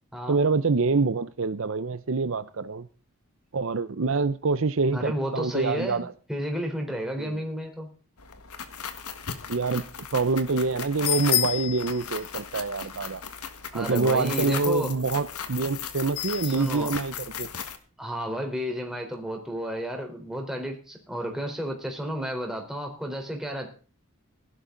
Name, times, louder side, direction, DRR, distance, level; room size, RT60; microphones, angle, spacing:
voice 1, 0.3-2.9 3.5-6.1 7.2-7.4 9.5-9.9 10.1-13.2 13.7-17.5, right 4 dB, 60° right, 0.6 m, -26 dB
voice 2, 4.9-7.9 13.7-14.9 16.5-16.9 18.0-23.7, equal, ahead, 3.7 m, -32 dB
sound 1, 8.2-17.8, left 10 dB, 90° left, 1.7 m, -33 dB
16.5 x 11.5 x 3.9 m
head